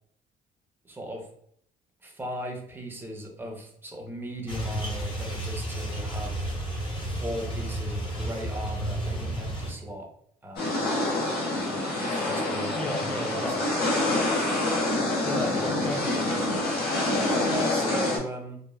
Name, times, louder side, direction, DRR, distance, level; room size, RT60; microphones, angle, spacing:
voice 1, 0.8-1.3 2.0-6.4 7.0-10.1 10.4-10.9 12.0-13.7 15.6-15.7 17.2-18.6, equal, 10° right, 1 dB, 0.7 m, -37 dB
sound 1, 4.5-9.7, right 1 dB, 30° left, 0.8 m, -32 dB
sound 2, 10.6-18.2, left 2 dB, 70° left, 1.0 m, -26 dB
voice 2, 12.8-14.0 15.2-16.6, left 1 dB, 5° left, 3 dB, 0.3 m, -35 dB
3.1 x 2.1 x 2.3 m, 0.67 s
cardioid pair, 110°, 17 cm